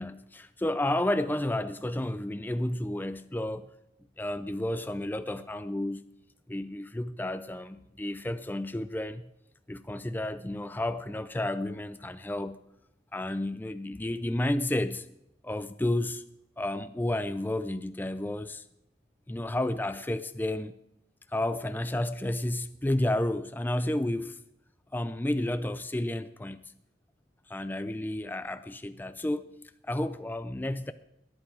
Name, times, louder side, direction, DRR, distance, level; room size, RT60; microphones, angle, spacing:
voice 1, 0.0-3.7 4.2-6.1 6.5-9.3 9.7-12.6 13.1-15.1 15.4-16.2 16.6-18.6 19.3-20.7 21.3-24.4 24.9-26.7 27.5-29.6 29.8-30.9, left 1 dB, 10° left, 0.4 m, -31 dB
20.5 x 8.4 x 4.8 m
head